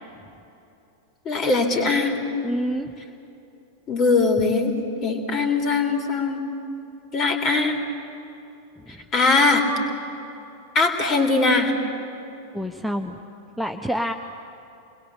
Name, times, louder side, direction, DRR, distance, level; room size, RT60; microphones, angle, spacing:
voice 1, 1.2-2.1 3.9-4.7 5.0-6.4 7.1-7.8 9.1-9.6 10.7-11.7, left 3 dB, 30° left, 5 dB, 3.3 m, -20 dB
voice 2, 2.4-2.9 8.9-9.0 12.5-13.2 13.6-14.1, equal, ahead, 3 dB, 0.9 m, -27 dB
28.5 x 21.0 x 7.2 m, 2.8 s
figure-of-eight pair, 90°, 0 cm